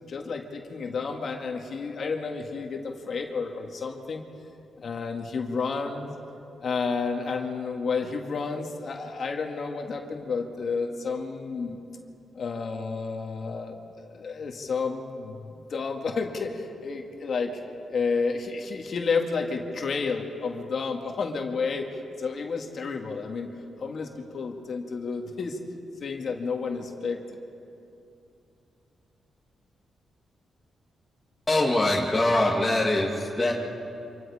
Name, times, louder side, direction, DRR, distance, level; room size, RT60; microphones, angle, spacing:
voice 1, 0.1-4.2 4.8-6.1 6.6-11.8 12.3-17.6 17.9-23.5 23.8-25.6 26.0-27.2, left 4 dB, 55° left, 2 dB, 2.1 m, -31 dB
voice 2, 31.5-33.5, left 1 dB, 15° left, -4 dB, 2.2 m, -23 dB
28.5 x 26.5 x 5.0 m, 2.8 s
cardioid pair, 120°, 0 cm